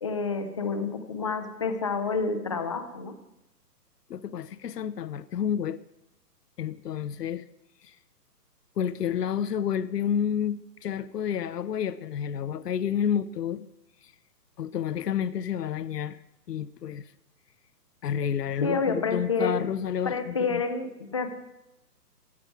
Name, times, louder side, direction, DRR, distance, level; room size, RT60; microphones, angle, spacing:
voice 1, 0.0-3.1 18.6-19.5 20.0-21.3, left 4 dB, 20° left, 7 dB, 0.5 m, -28 dB
voice 2, 4.1-5.8 6.6-7.4 7.8-7.9 8.8-13.7 14.6-16.2 16.5-17.0 18.0-20.6, left 8 dB, 75° left, 16 dB, 0.7 m, -30 dB
13.5 x 8.7 x 4.7 m, 0.91 s
hypercardioid pair, 140°, 49 cm